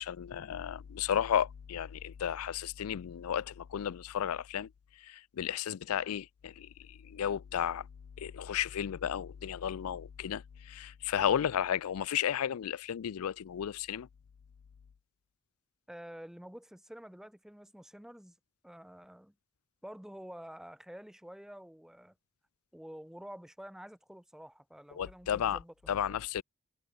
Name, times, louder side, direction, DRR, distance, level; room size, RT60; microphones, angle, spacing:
voice 1, 0.0-4.7 5.0-7.9 8.2-14.1 25.0-25.6 25.9-26.4, left 9 dB, 80° left, 0.4 m, -33 dB
voice 2, 15.9-18.4 18.6-19.3 19.8-22.1 22.7-26.2, equal, ahead, 0.4 m, -49 dB
head